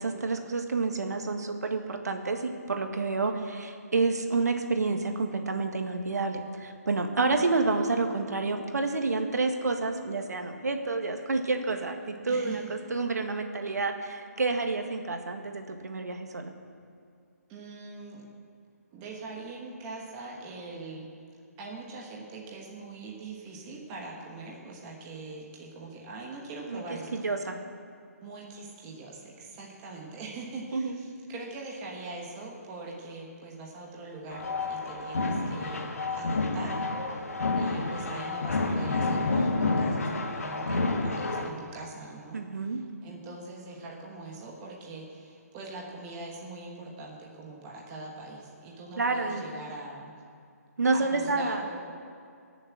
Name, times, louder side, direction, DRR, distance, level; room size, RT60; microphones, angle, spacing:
voice 1, 0.0-16.5 26.7-26.8 27.1-27.6 30.7-31.0 42.3-42.8 49.0-49.5 50.8-51.8, right 3 dB, 75° right, 5 dB, 1.8 m, -29 dB
voice 2, 3.3-3.9 12.3-12.7 17.5-18.2 18.9-21.1 21.6-27.3 28.2-37.3 37.6-50.1 50.9-51.8, right 3 dB, 10° right, -2 dB, 1.2 m, -42 dB
sound 1, 34.3-41.5, left 3 dB, 60° left, 1.7 m, -29 dB
21.0 x 7.2 x 8.5 m, 2.3 s
hypercardioid pair, 175°, 9 cm